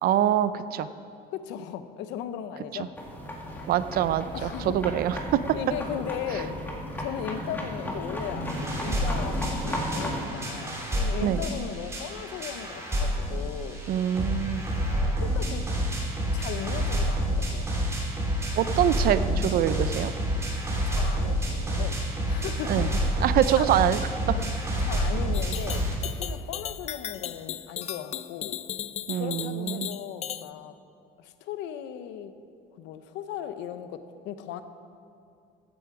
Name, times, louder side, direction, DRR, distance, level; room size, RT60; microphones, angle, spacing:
voice 1, 0.0-0.9 3.7-5.4 6.3-6.4 11.2-11.4 13.9-14.6 18.6-20.1 22.7-22.9 23.2-24.0 24.3-24.4 29.1-29.9, right 11 dB, 55° right, 13 dB, 0.5 m, -25 dB
voice 2, 1.3-3.0 4.3-4.8 5.5-6.6 7.0-13.8 15.2-15.7 16.3-17.7 20.8-22.0 22.3-23.2 23.5-23.7 24.3-24.5 24.8-28.6 29.1-30.8 31.2-32.3 32.8-34.6, left 9 dB, 85° left, 11 dB, 0.8 m, -37 dB
sound 1, 2.9-10.3, equal, 10° left, 1.9 m, -34 dB
sound 2, 8.5-25.9, equal, 15° right, 2.8 m, -28 dB
sound 3, 25.3-30.5, left 10 dB, 40° left, 0.3 m, -36 dB
15.0 x 9.5 x 4.8 m, 2.5 s
cardioid pair, 135°, 18 cm